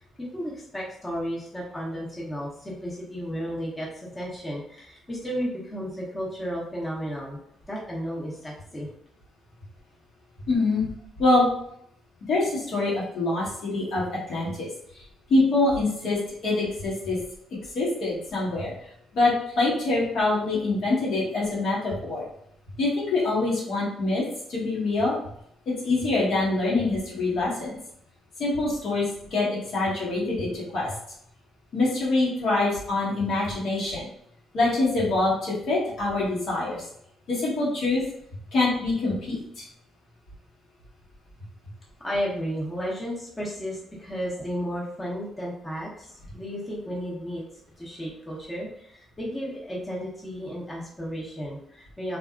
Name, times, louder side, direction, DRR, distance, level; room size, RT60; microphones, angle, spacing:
voice 1, 0.2-7.4 7.6-8.9 42.0-47.4 47.8-52.2, equal, 15° left, -5 dB, 0.8 m, -33 dB
voice 2, 10.5-10.9 11.2-11.5 12.3-14.7 15.3-17.2 17.7-18.7 19.1-22.2 22.8-24.2 24.5-25.2 25.7-27.8 28.4-29.0 29.3-30.9 31.7-34.1 34.5-36.8 37.3-38.0 38.5-39.6, left 2 dB, 70° left, -6 dB, 1.2 m, -25 dB
2.6 x 2.4 x 2.4 m, 0.71 s
cardioid pair, 90°, 0 cm